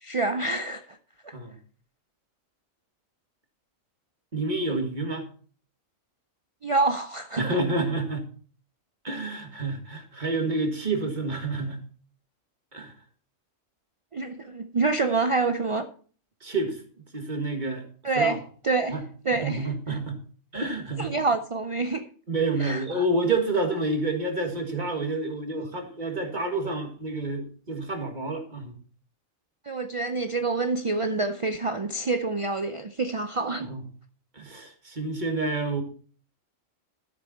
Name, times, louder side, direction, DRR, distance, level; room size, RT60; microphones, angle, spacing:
voice 1, 0.0-1.0 1.2-1.4 6.6-7.4 14.1-15.9 18.0-19.0 19.2-19.7 21.0-22.1 22.6-23.0 29.6-33.7, right 3 dB, 55° right, 0.3 m, -27 dB
voice 2, 4.3-5.3 7.4-8.3 9.0-11.8 12.7-12.9 16.4-16.8 17.1-17.8 18.2-18.4 18.9-19.0 19.3-20.2 20.5-21.1 22.3-28.7 33.6-33.8 34.3-35.8, right 2 dB, 35° right, 1.8 m, -28 dB
12.5 x 7.5 x 4.1 m
omnidirectional pair, 1.3 m